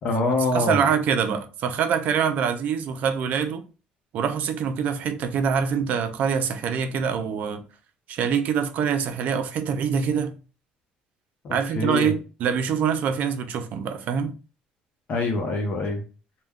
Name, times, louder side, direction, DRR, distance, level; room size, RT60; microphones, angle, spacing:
voice 1, 0.0-0.9 11.4-12.1 15.1-16.0, left 2 dB, 50° left, 0.7 m, -25 dB
voice 2, 0.5-3.6 4.1-7.6 8.1-10.4 11.5-14.3, right 7 dB, 60° right, 0.4 m, -25 dB
2.2 x 2.2 x 3.4 m
cardioid pair, 105°, 3 cm